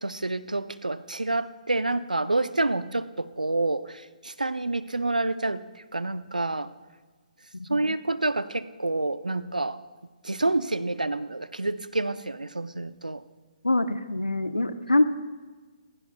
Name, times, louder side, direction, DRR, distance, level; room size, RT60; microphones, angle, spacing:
voice 1, 0.0-5.6 5.9-6.7 7.7-9.8 10.2-13.2, right 2 dB, 80° right, 15 dB, 0.6 m, -28 dB
voice 2, 7.5-8.0 13.6-15.1, left 2 dB, 85° left, 10 dB, 0.9 m, -25 dB
27.5 x 15.0 x 2.3 m, 1.3 s
figure-of-eight pair, 130°, 4 cm